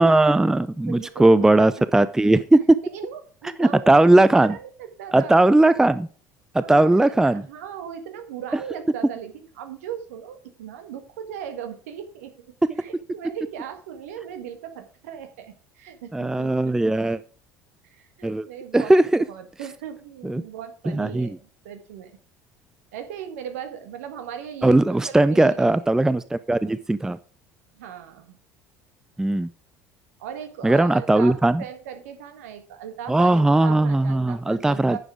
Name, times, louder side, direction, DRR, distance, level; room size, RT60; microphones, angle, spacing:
voice 1, 0.0-2.6 3.6-4.5 5.1-6.1 6.5-7.4 16.1-17.2 18.2-18.5 18.7-19.2 20.2-20.4 20.9-21.3 24.6-27.2 29.2-29.5 30.6-31.6 33.1-35.0, right 2 dB, 5° right, 16 dB, 0.4 m, -18 dB
voice 2, 0.8-1.7 2.0-2.1 2.8-4.0 4.4-5.5 6.6-17.0 17.8-18.9 19.3-22.2 22.9-25.7 27.7-28.4 30.2-35.0, right 9 dB, 65° right, 7 dB, 1.6 m, -38 dB
9.8 x 7.1 x 4.7 m, 0.41 s
figure-of-eight pair, 60°, 9 cm